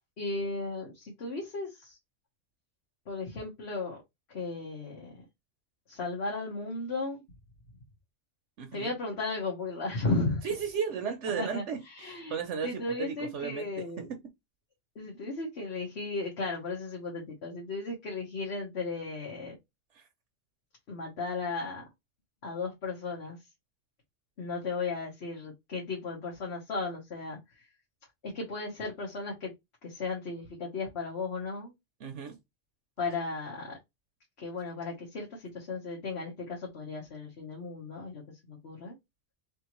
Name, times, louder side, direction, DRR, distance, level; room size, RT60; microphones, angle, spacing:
voice 1, 0.2-2.0 3.1-4.0 4.3-5.2 5.9-7.2 8.7-10.5 11.4-12.3 12.6-14.1 14.9-19.6 20.9-21.8 22.4-23.4 24.4-27.7 28.2-29.5 29.8-31.7 33.0-33.8 34.4-38.9, left 3 dB, 60° left, 1.4 m, -35 dB
voice 2, 8.6-8.9 10.4-11.8 12.3-13.7 19.9-20.1 32.0-32.4, right 6 dB, 70° right, 1.1 m, -34 dB
4.0 x 3.4 x 3.0 m
omnidirectional pair, 1.3 m